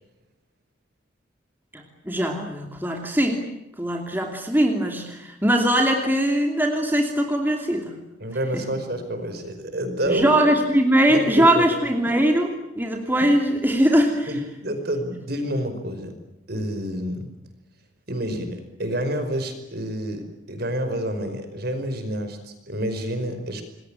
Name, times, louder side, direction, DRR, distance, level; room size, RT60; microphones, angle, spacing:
voice 1, 1.7-3.4 3.8-8.0 8.5-8.7 10.1-14.3, right 1 dB, 10° right, 2 dB, 2.8 m, -21 dB
voice 2, 8.2-10.3 11.1-11.7 14.3-16.1 16.5-17.3 18.1-23.6, right 1 dB, 50° right, 8 dB, 5.2 m, -28 dB
27.5 x 21.5 x 9.0 m, 0.89 s
head